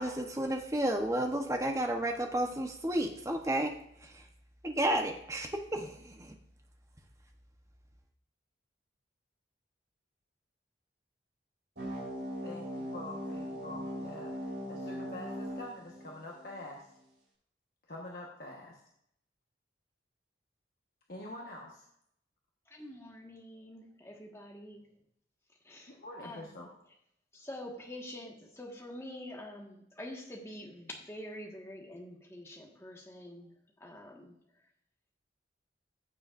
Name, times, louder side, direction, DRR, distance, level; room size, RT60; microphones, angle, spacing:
voice 1, 0.0-3.8 4.1-4.2 4.6-6.3, right 1 dB, 15° right, 4 dB, 0.9 m, -32 dB
sound 1, 11.8-16.8, equal, 70° right, 4.0 m, -40 dB
voice 2, 12.4-16.9 17.9-18.8 21.1-21.9 25.9-26.7, left 1 dB, 55° left, -2 dB, 1.3 m, -46 dB
voice 3, 22.7-24.8 25.6-26.0 26.2-26.5 27.3-33.5 33.8-34.6, left 1 dB, 15° left, 0 dB, 1.6 m, -46 dB
15.0 x 6.9 x 2.5 m, 0.73 s
head